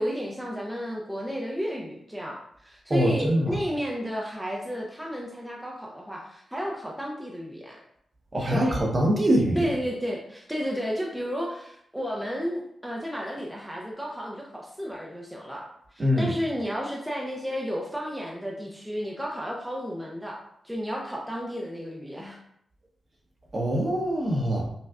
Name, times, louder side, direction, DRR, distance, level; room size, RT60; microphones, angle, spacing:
voice 1, 0.0-7.8 8.5-8.8 9.6-22.4, equal, 5° right, -2 dB, 0.6 m, -32 dB
voice 2, 2.9-3.7 8.3-9.7 16.0-16.4 23.5-24.7, equal, 35° right, -1 dB, 1.0 m, -24 dB
5.2 x 2.4 x 2.4 m, 0.72 s
cardioid pair, 70°, 0 cm